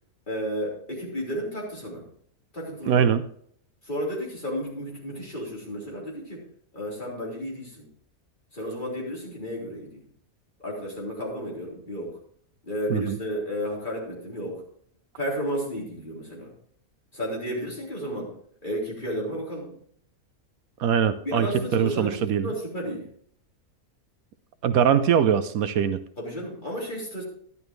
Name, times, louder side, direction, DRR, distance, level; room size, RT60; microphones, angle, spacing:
voice 1, 0.3-2.0 2.5-3.0 3.9-6.4 6.7-7.9 8.5-10.0 10.6-12.2 12.6-14.6 15.2-16.5 17.1-18.3 18.6-19.7 21.2-23.1 26.2-27.2, equal, 30° left, -4 dB, 4.0 m, -32 dB
voice 2, 2.9-3.3 12.9-13.2 20.8-22.5 24.6-26.0, right 8 dB, 75° right, 11 dB, 1.1 m, -22 dB
12.0 x 11.0 x 3.2 m, 0.62 s
omnidirectional pair, 1.5 m